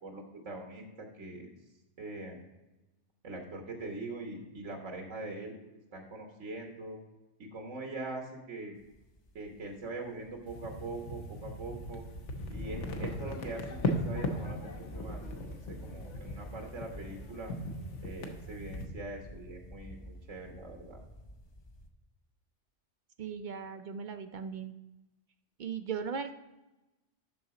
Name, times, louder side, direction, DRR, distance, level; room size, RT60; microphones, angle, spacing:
voice 1, 0.0-1.5 2.0-2.4 3.2-5.5 5.9-7.0 7.4-8.7 9.3-12.0 12.5-15.2 15.5-17.5 18.0-21.0, right 2 dB, 85° right, 2 dB, 1.7 m, -42 dB
sound 1, 8.8-21.9, left 1 dB, 30° left, 0.5 m, -47 dB
sound 2, 10.5-18.9, left 1 dB, 70° left, 1.3 m, -38 dB
voice 2, 23.2-24.7 25.6-26.3, right 6 dB, 55° right, 9 dB, 0.5 m, -38 dB
12.0 x 4.0 x 4.8 m, 1.0 s
omnidirectional pair, 1.3 m